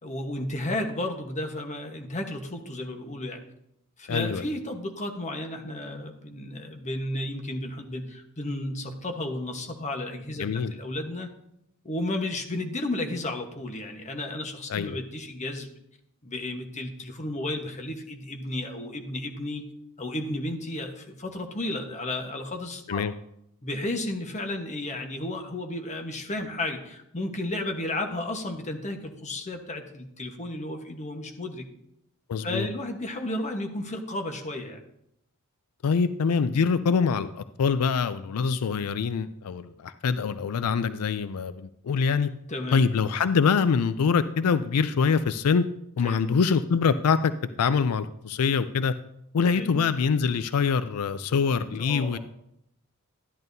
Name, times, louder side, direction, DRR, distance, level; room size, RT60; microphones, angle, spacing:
voice 1, 0.0-3.4 4.0-11.3 11.8-15.7 16.2-19.6 20.0-23.0 23.6-31.7 32.4-34.8 42.5-42.8 44.9-45.0 46.0-46.2 49.5-49.8 51.6-52.2, left 1 dB, 35° left, 4 dB, 1.1 m, -33 dB
voice 2, 4.1-4.4 10.4-10.7 14.7-15.0 22.9-23.1 32.3-32.7 35.8-42.3 42.7-45.6 46.0-47.3 47.6-48.9 49.3-52.2, left 5 dB, 85° left, 12 dB, 0.4 m, -24 dB
12.5 x 11.0 x 2.7 m, 0.78 s
head